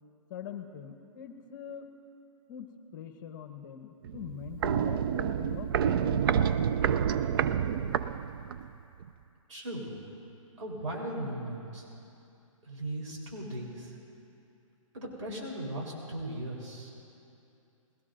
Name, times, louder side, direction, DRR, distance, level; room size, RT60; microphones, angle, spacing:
voice 1, 0.3-1.9 2.5-2.7 2.9-6.5, left 9 dB, 35° left, 6 dB, 1.0 m, -43 dB
Walk footsteps, 4.0-8.7 9.0-9.1, right 8 dB, 45° right, 0.4 m, -28 dB
voice 2, 9.5-10.0 10.6-11.9 12.6-14.0 14.9-16.9, right 1 dB, 65° right, -3 dB, 4.0 m, -38 dB
21.0 x 18.0 x 2.6 m, 2.7 s
hypercardioid pair, 150°, 17 cm